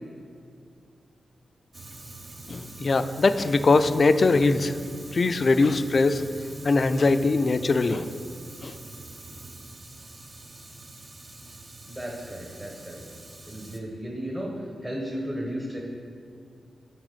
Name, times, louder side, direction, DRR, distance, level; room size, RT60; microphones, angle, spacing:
Fire, 1.7-13.8, right 2 dB, 45° right, 0.8 m, -44 dB
voice 1, 2.5-4.7 5.1-6.3 6.6-8.1 8.6-8.7, left 3 dB, 50° left, 12 dB, 0.3 m, -21 dB
voice 2, 11.9-13.0 13.4-15.8, equal, 25° right, -3 dB, 1.2 m, -34 dB
8.9 x 3.6 x 5.0 m, 2.4 s
supercardioid pair, 45°, 0 cm